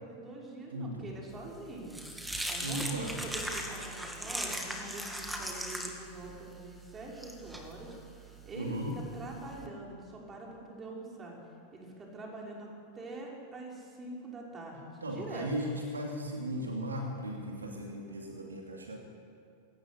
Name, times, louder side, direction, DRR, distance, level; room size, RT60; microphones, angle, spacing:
voice 1, 0.0-2.0 2.5-11.4 11.7-12.7 12.9-15.7, right 2 dB, 20° right, -2 dB, 6.1 m, -44 dB
voice 2, 0.7-1.1 2.6-3.2 8.5-9.0 15.0-19.0, equal, 75° right, 1 dB, 2.7 m, -36 dB
sound 1, 1.4-9.7, right 1 dB, 5° right, 2.8 m, -39 dB
22.0 x 18.0 x 8.5 m, 2.3 s
figure-of-eight pair, 90°, 0 cm